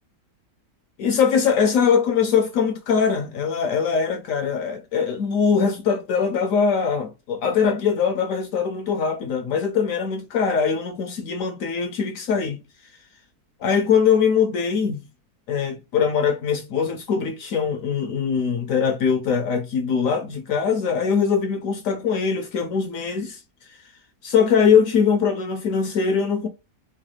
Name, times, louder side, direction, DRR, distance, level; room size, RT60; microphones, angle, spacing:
voice 1, 1.0-12.6 13.6-15.1 15.5-23.4 23.7-23.8 24.2-26.5, left 6 dB, 70° left, 0.8 m, -22 dB
4.6 x 2.0 x 3.2 m
omnidirectional pair, 1.7 m